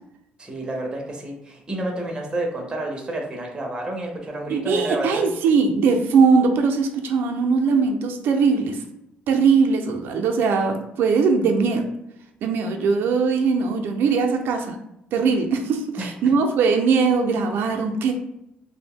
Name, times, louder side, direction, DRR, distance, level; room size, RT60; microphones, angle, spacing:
voice 1, 0.4-5.3 16.0-16.1, right 1 dB, 25° right, 1 dB, 0.6 m, -29 dB
voice 2, 4.5-8.8 9.3-11.8 12.4-14.7 15.1-18.1, right 5 dB, 75° right, 3 dB, 0.5 m, -20 dB
2.6 x 2.1 x 3.5 m, 0.82 s
cardioid pair, 110°, 4 cm